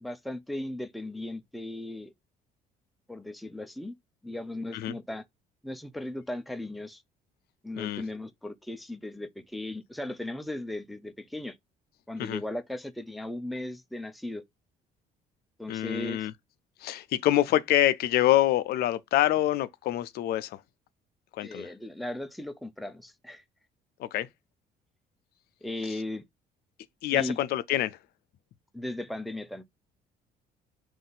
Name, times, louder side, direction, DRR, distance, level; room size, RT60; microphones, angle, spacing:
voice 1, 0.0-2.1 3.1-3.9 4.2-5.2 5.6-7.0 7.6-11.6 12.1-14.4 15.6-16.3 21.4-23.4 25.6-26.2 27.1-27.4 28.7-29.6, left 1 dB, ahead, 0.4 m, -37 dB
voice 2, 15.7-16.3 16.8-20.6 21.3-21.7 24.0-24.3 27.0-28.0, left 13 dB, 70° left, 0.4 m, -26 dB
3.7 x 2.5 x 3.9 m
cardioid pair, 110°, 17 cm